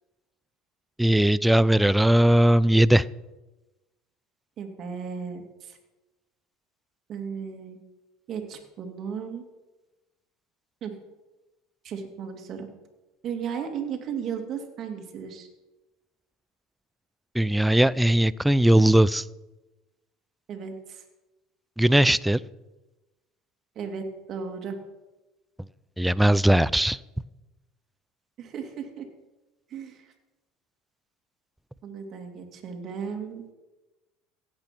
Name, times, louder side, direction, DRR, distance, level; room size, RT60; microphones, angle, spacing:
voice 1, 1.0-3.0 17.3-19.2 21.8-22.4 26.0-27.0, right 1 dB, 5° right, 19 dB, 0.4 m, -19 dB
voice 2, 4.6-5.8 7.1-7.8 8.3-9.4 10.8-11.0 11.8-12.7 13.2-15.5 20.5-21.0 23.7-24.8 28.4-29.1 29.7-30.1 31.8-33.4, right 6 dB, 50° right, 4 dB, 2.7 m, -35 dB
16.0 x 9.0 x 6.0 m, 1.1 s
supercardioid pair, 95°, 0 cm